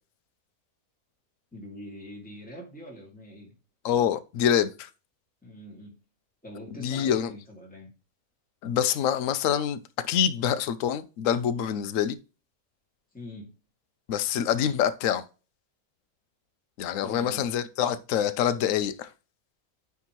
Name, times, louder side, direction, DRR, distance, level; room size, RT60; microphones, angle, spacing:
voice 1, 1.5-3.5 5.4-6.0 6.4-7.9 13.1-13.5 17.0-17.5, equal, 5° left, 2.0 m, -43 dB
voice 2, 3.8-4.9 6.8-7.3 8.6-12.2 14.1-15.2 16.8-19.1, left 9 dB, 70° left, 1.0 m, -26 dB
9.4 x 3.5 x 3.0 m
omnidirectional pair, 1.6 m